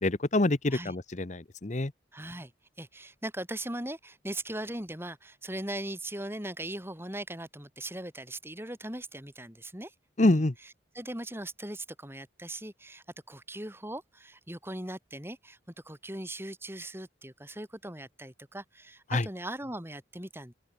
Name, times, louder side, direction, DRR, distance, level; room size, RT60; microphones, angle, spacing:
voice 1, 0.0-1.9 10.2-10.5 19.1-19.3, left 2 dB, 40° left, 1.0 m, -26 dB
voice 2, 2.1-2.5 2.8-9.9 10.2-15.6 15.8-20.5, right 1 dB, 10° right, 7.8 m, -39 dB
open air
head